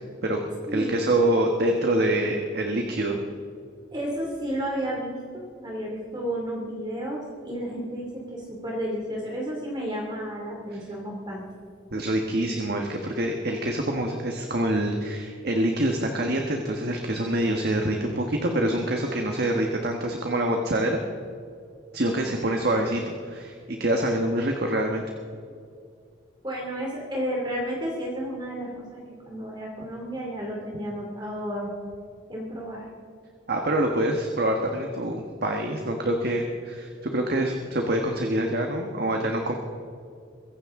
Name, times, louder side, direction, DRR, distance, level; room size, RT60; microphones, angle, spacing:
voice 1, 0.7-3.2 11.9-21.0 21.9-23.5 23.8-25.0 33.5-39.5, right 1 dB, 55° right, 2 dB, 1.3 m, -25 dB
voice 2, 3.9-11.4 26.4-29.0 29.3-31.7 32.3-32.9, equal, 25° right, -2 dB, 2.5 m, -32 dB
23.5 x 15.5 x 3.7 m, 2.3 s
head